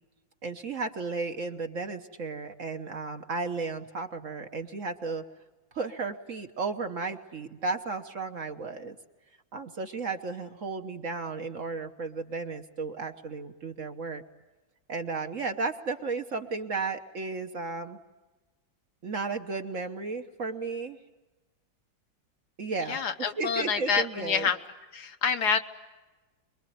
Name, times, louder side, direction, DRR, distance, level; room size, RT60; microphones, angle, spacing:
voice 1, 0.4-5.2 5.7-9.0 9.5-14.2 14.9-18.0 19.0-21.0 22.6-23.0 23.4-24.5, right 4 dB, 50° right, 6 dB, 1.3 m, -34 dB
voice 2, 22.9-24.6 24.9-25.6, left 6 dB, 60° left, 8 dB, 1.5 m, -27 dB
25.0 x 22.5 x 9.2 m, 1.2 s
omnidirectional pair, 2.0 m